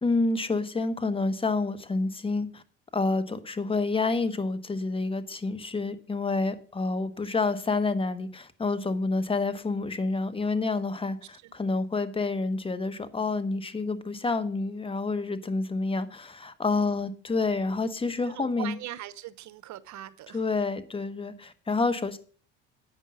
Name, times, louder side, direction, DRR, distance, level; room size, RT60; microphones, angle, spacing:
voice 1, 0.0-2.6 2.9-18.7 20.3-22.2, left 3 dB, 15° left, 12 dB, 1.1 m, -28 dB
voice 2, 10.4-10.9 11.2-11.5 16.7-17.1 18.2-20.5, right 14 dB, 50° right, 14 dB, 1.0 m, -42 dB
9.1 x 5.4 x 7.6 m, 0.43 s
hypercardioid pair, 85°, 36 cm